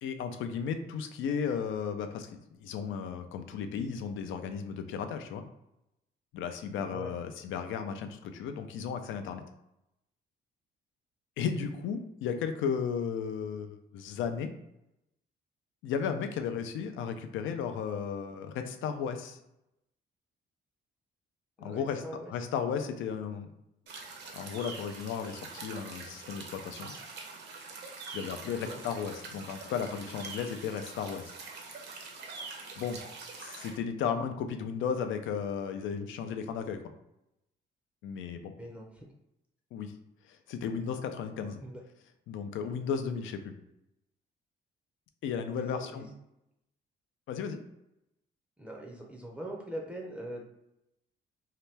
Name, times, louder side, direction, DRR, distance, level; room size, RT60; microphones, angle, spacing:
voice 1, 0.0-5.4 6.3-9.4 11.4-14.5 15.8-19.4 21.6-22.0 22.3-23.5 24.3-26.9 28.1-31.3 32.8-33.0 33.4-36.8 38.0-38.5 39.7-39.9 40.3-41.6 42.3-43.5 45.2-46.1 47.3-47.6, left 7 dB, 80° left, 7 dB, 0.4 m, -34 dB
voice 2, 21.6-22.3 28.5-28.8 38.6-39.1 41.6-41.8 45.6-46.1 48.6-50.5, right 1 dB, 5° right, 0 dB, 0.5 m, -42 dB
sound 1, 23.9-33.8, right 4 dB, 60° right, 0.7 m, -44 dB
2.8 x 2.2 x 3.2 m, 0.86 s
cardioid pair, 90°, 20 cm